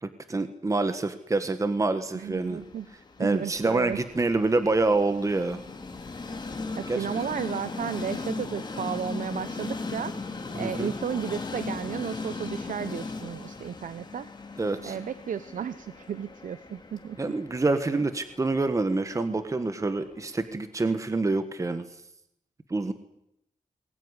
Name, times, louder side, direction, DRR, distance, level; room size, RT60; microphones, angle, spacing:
voice 1, 0.0-2.6 3.2-5.6 6.9-7.2 10.6-10.9 14.6-15.0 17.2-21.9 22.7-22.9, right 3 dB, 25° right, 10 dB, 1.5 m, -27 dB
voice 2, 2.1-2.9 3.2-4.0 6.8-10.1 10.5-14.3 14.8-17.3 17.9-18.0, right 8 dB, 90° right, 14 dB, 1.0 m, -33 dB
Train, 2.4-20.4, left 3 dB, 35° left, 3.1 m, -38 dB
22.0 x 21.0 x 9.9 m, 0.80 s
wide cardioid pair, 145°, 13 cm